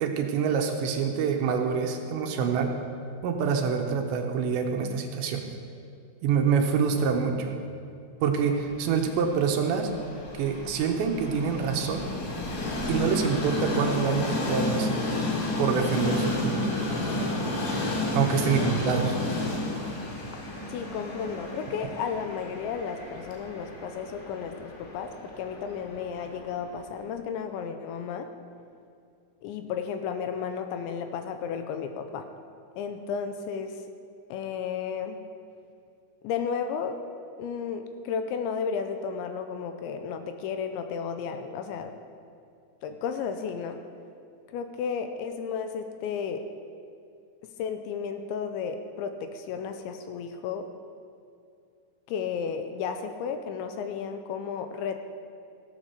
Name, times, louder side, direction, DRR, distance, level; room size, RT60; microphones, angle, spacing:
voice 1, 0.0-2.7 3.2-5.4 6.2-7.6 8.2-9.9 10.4-12.1 12.9-15.0 15.6-16.6 18.1-19.2, right 6 dB, 75° right, 3 dB, 2.9 m, -26 dB
Train, 8.7-26.8, left 2 dB, 60° left, 3.8 m, -32 dB
voice 2, 18.4-18.7 20.7-28.3 29.4-32.3 32.8-33.8 34.3-35.2 36.2-37.0 37.4-41.9 42.8-43.8 44.5-46.4 47.6-50.7 52.1-55.0, left 6 dB, 85° left, 7 dB, 2.9 m, -33 dB
16.0 x 8.3 x 6.6 m, 2.5 s
omnidirectional pair, 5.5 m